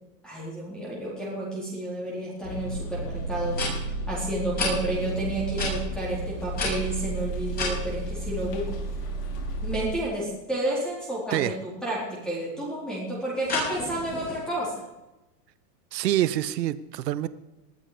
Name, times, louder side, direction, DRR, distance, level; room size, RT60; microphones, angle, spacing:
voice 1, 0.2-3.6 4.1-8.7 9.6-14.9, right 1 dB, ahead, -6 dB, 4.1 m, -31 dB
sound 1, 2.4-9.9, right 2 dB, 75° left, 5.5 m, -32 dB
sound 2, 2.7-2.8 3.5-3.7 4.6-4.7 5.5-5.7 6.5-7.8 13.4-14.4, left 3 dB, 20° left, 7.3 m, -30 dB
voice 2, 15.9-17.3, right 13 dB, 80° right, 16 dB, 1.1 m, -26 dB
19.5 x 12.5 x 5.1 m, 1.0 s
supercardioid pair, 160°, 48 cm